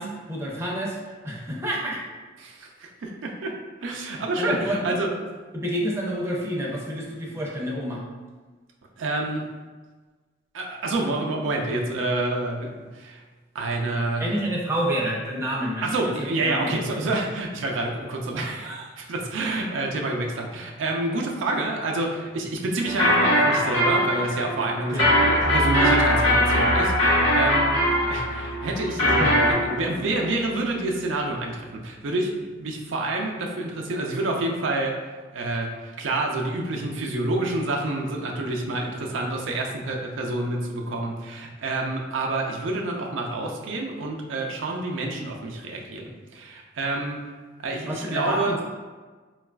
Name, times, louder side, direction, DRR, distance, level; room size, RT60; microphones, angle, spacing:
voice 1, 0.0-2.0 4.4-4.9 5.5-8.0 14.2-15.9 16.4-17.0 24.9-25.1 29.0-29.9 47.8-48.6, equal, 15° right, -4 dB, 0.5 m, -29 dB
voice 2, 2.4-3.6 3.8-5.1 9.0-9.4 10.5-13.2 13.5-14.3 15.8-34.9 35.3-47.2 47.6-48.6, right 2 dB, 85° right, 1 dB, 0.4 m, -28 dB
sound 1, 22.9-29.5, equal, 85° left, 1.0 m, -21 dB
sound 2, 25.4-30.8, right 1 dB, 40° left, 0.7 m, -32 dB
3.9 x 2.3 x 2.2 m, 1.4 s
head